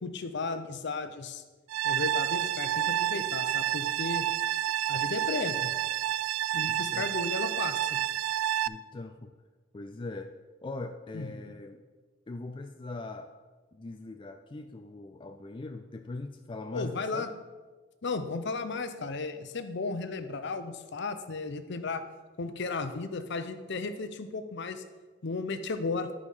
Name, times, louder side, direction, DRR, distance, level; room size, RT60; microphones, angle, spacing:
voice 1, 0.0-1.4 1.8-4.2 4.9-5.7 6.5-8.0 11.1-11.4 16.7-17.3 18.0-22.0 22.4-24.8 25.2-26.1, left 3 dB, 60° left, 9 dB, 0.7 m, -34 dB
sound 1, 1.7-8.7, right 12 dB, 85° right, 0.3 m, -29 dB
voice 2, 8.7-9.3 9.7-10.3 10.6-11.8 12.3-13.3 13.7-17.3, left 2 dB, 25° left, 5 dB, 0.4 m, -41 dB
10.5 x 4.9 x 5.4 m, 1.3 s
head